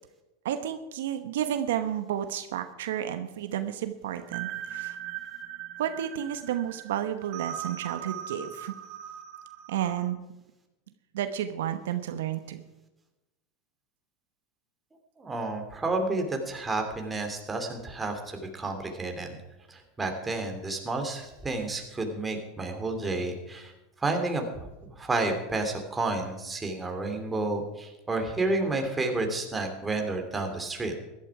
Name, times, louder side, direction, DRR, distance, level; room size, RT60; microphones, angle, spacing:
voice 1, 0.4-5.0 5.8-8.7 9.7-10.2 11.1-12.6, right 10 dB, 80° right, 9 dB, 1.0 m, -31 dB
sound 1, 4.1-10.1, right 10 dB, 50° right, 1.7 m, -40 dB
voice 2, 15.2-19.4 19.7-23.7 24.0-30.9, right 2 dB, 15° right, 3 dB, 2.7 m, -31 dB
15.5 x 11.5 x 4.8 m, 0.99 s
hypercardioid pair, 115°, 0 cm